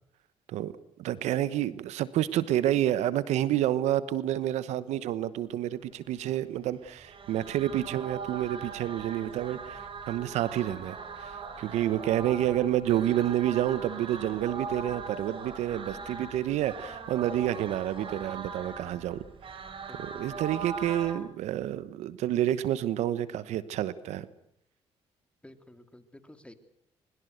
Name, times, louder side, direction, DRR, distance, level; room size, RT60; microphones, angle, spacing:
voice 1, 1.0-9.8 10.1-19.6 20.0-24.3, right 12 dB, 75° right, 16 dB, 1.1 m, -29 dB
sound 1, 6.8-21.2, right 5 dB, 50° right, 5.4 m, -40 dB
voice 2, 19.9-20.6 25.4-26.5, left 1 dB, 10° left, 9 dB, 3.0 m, -52 dB
22.0 x 21.5 x 8.0 m, 0.72 s
supercardioid pair, 65°, 12 cm